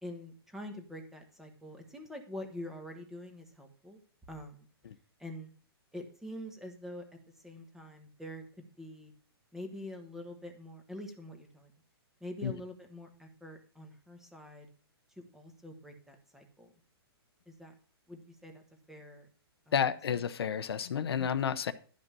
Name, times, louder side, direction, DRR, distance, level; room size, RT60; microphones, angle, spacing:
voice 1, 0.0-4.0 4.3-4.7 5.2-5.5 5.9-7.0 7.4-9.1 9.5-11.7 12.2-14.7 15.1-16.7 17.5-17.7 18.1-18.6 18.9-19.3 19.7-19.8, left 1 dB, 5° right, 1.1 m, -45 dB
voice 2, 19.7-21.7, left 8 dB, 70° left, 0.8 m, -31 dB
11.5 x 5.4 x 5.4 m
hypercardioid pair, 160°, 13 cm